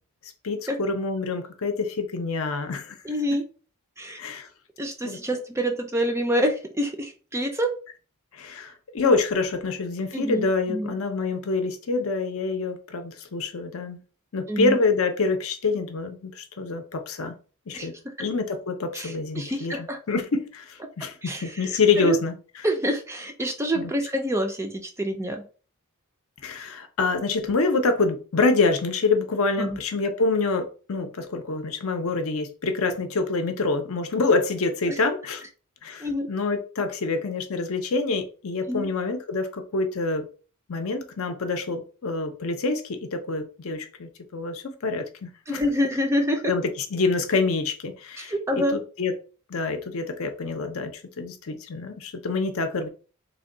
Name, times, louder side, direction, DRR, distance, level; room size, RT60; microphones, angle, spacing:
voice 1, 0.4-3.0 4.2-4.5 5.0-5.2 8.3-14.0 14.3-17.3 17.7-22.3 23.7-23.9 26.4-35.4 35.8-40.3 40.7-45.6 46.4-49.1 49.5-52.9, left 3 dB, 65° left, 0.6 m, -26 dB
voice 2, 3.0-3.4 4.0-4.2 4.8-7.7 10.1-10.9 14.5-14.8 17.7-18.1 18.9-20.0 21.2-21.5 22.0-22.2 22.6-25.4 29.6-29.8 36.0-36.3 38.7-38.9 45.5-46.5 48.2-48.8, equal, 10° right, 0.4 m, -27 dB
3.4 x 2.2 x 3.7 m
head